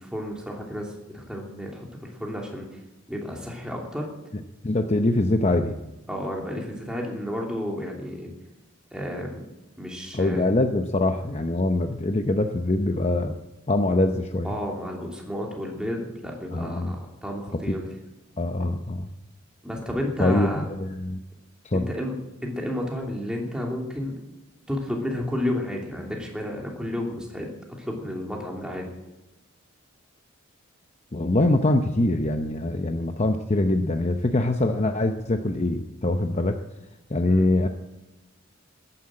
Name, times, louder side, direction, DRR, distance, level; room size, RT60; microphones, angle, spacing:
voice 1, 0.0-2.8 3.1-4.1 6.1-8.3 8.9-9.4 9.8-10.5 14.4-17.9 19.6-20.7 21.7-24.2 24.7-28.9 37.2-37.5, left 1 dB, 5° right, -1 dB, 2.9 m, -32 dB
voice 2, 4.6-5.8 10.1-13.4 13.7-14.5 16.5-16.9 17.7-17.8 18.4-19.1 20.2-21.2 21.6-21.9 31.1-36.6 37.1-37.7, left 2 dB, 30° left, 6 dB, 0.7 m, -23 dB
14.0 x 10.0 x 8.6 m, 1.0 s
head